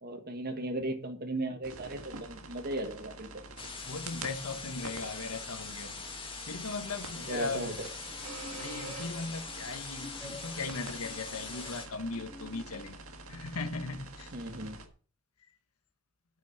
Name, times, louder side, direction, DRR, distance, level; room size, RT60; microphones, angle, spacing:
voice 1, 0.0-3.3 7.2-7.9 14.3-14.8, right 1 dB, 45° right, 6 dB, 1.7 m, -36 dB
sound 1, 1.6-14.9, right 3 dB, 70° right, 1.7 m, -47 dB
sound 2, 3.6-11.9, left 4 dB, 25° left, 1.9 m, -43 dB
voice 2, 3.8-7.7 8.5-13.0 13.3-14.3, left 3 dB, 80° left, 10 dB, 1.2 m, -38 dB
sound 3, 7.5-13.4, left 2 dB, 5° left, 2.2 m, -51 dB
9.1 x 6.1 x 7.4 m, 0.41 s
head